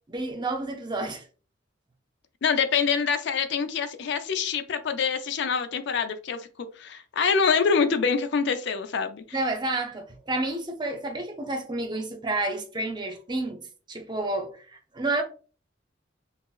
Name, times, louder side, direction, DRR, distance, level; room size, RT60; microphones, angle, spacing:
voice 1, 0.1-1.2 9.3-15.2, right 2 dB, 25° right, 0.6 m, -30 dB
voice 2, 2.4-6.5 6.8-9.4, left 6 dB, 65° left, 0.4 m, -25 dB
5.8 x 2.0 x 2.3 m
head